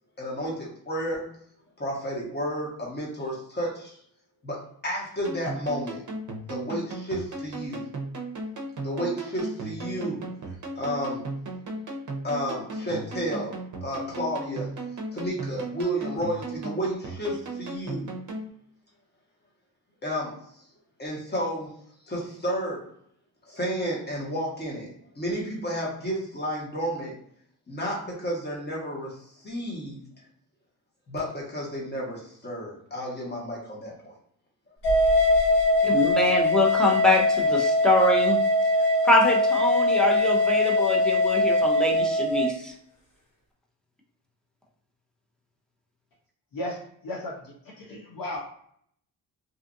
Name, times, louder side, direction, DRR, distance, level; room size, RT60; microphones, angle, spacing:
voice 1, 0.2-1.3 1.8-4.0 4.4-6.0 6.5-7.8 8.8-10.2 10.8-11.2 12.2-14.8 15.1-18.1 20.0-20.5 21.0-22.9 23.5-24.9 25.1-27.1 27.7-30.0 31.1-34.1, equal, 25° left, -3 dB, 1.2 m, -32 dB
sound 1, 5.2-18.5, right 2 dB, 50° right, 0.7 m, -36 dB
sound 2, 34.8-42.5, left 1 dB, 75° left, 1.4 m, -22 dB
voice 2, 35.8-38.4 39.0-42.7, left 2 dB, ahead, -1 dB, 0.7 m, -24 dB
voice 3, 46.5-48.4, left 1 dB, 60° left, -2 dB, 0.7 m, -35 dB
2.7 x 2.5 x 2.5 m, 0.65 s
cardioid pair, 80°, 39 cm